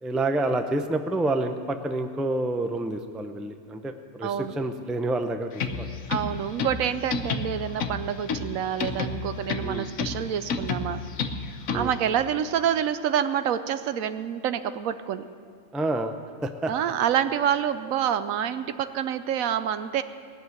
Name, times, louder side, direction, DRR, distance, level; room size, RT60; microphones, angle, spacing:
voice 1, 0.0-5.5 5.8-5.9 9.6-9.9 11.7-11.9 15.7-16.1 16.4-16.7, right 2 dB, ahead, 7 dB, 0.3 m, -28 dB
voice 2, 4.2-4.5 6.1-11.0 11.7-15.2 16.7-20.0, right 9 dB, 85° right, 12 dB, 1.1 m, -27 dB
sound 1, 5.5-12.1, left 5 dB, 80° left, 1.3 m, -31 dB
18.5 x 6.7 x 9.4 m, 2.2 s
omnidirectional pair, 1.4 m